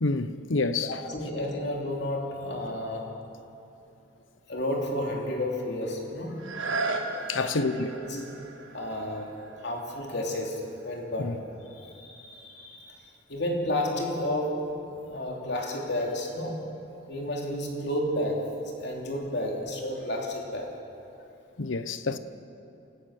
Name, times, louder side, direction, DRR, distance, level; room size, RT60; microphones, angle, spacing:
voice 1, 0.0-1.0 7.3-7.9 11.2-11.4 21.6-22.2, left 3 dB, 85° left, 0.9 m, -28 dB
voice 2, 0.8-3.1 4.5-6.5 7.4-8.4 8.7-9.4 9.6-11.4 11.7-16.7 17.1-20.7, left 1 dB, 60° left, 3.0 m, -32 dB
sound 1, 6.4-12.0 12.6-12.7, right 3 dB, 85° right, 1.7 m, -37 dB
27.5 x 15.5 x 6.4 m
head